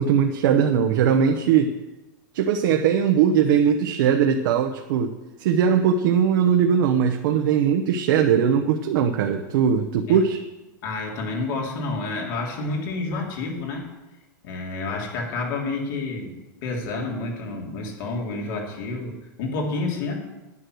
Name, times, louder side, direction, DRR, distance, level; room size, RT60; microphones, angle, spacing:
voice 1, 0.0-1.7 2.3-5.1 5.4-10.4, right 7 dB, 75° right, 4 dB, 0.9 m, -20 dB
voice 2, 10.8-13.9 14.4-20.2, left 3 dB, 70° left, -1 dB, 3.2 m, -29 dB
9.7 x 9.6 x 6.4 m, 1.1 s
supercardioid pair, 130°, 11 cm